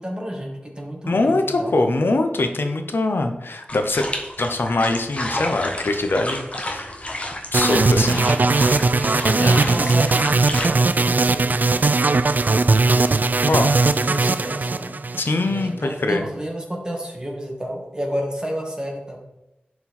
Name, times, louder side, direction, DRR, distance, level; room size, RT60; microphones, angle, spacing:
voice 1, 0.0-1.7 8.0-13.3 13.7-15.2 15.4-19.2, equal, 20° right, -1 dB, 2.1 m, -31 dB
voice 2, 1.1-4.0 4.4-6.9 7.5-8.2 9.4-9.6 13.5-13.7 15.2-16.3, left 2 dB, 75° left, 6 dB, 0.9 m, -22 dB
sound 1, 3.7-10.7, left 1 dB, 35° left, 1.3 m, -30 dB
sound 2, 7.5-15.6, right 3 dB, 50° right, 0.4 m, -19 dB
11.0 x 4.5 x 4.3 m, 0.93 s
wide cardioid pair, 65°, 4 cm